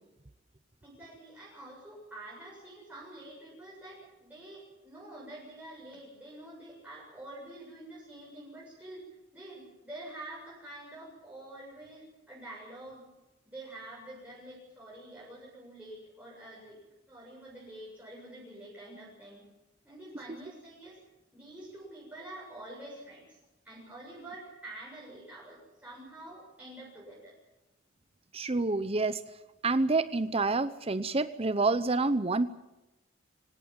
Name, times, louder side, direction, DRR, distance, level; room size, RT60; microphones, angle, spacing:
voice 1, 0.8-9.0 9.3-13.1 13.5-16.8 17.1-19.5 19.8-21.0 21.3-23.4 23.6-27.4, right 1 dB, 10° right, -6 dB, 7.3 m, -47 dB
voice 2, 28.3-29.2 29.6-32.5, right 3 dB, 30° right, 13 dB, 0.7 m, -28 dB
25.0 x 18.5 x 7.4 m, 0.97 s
head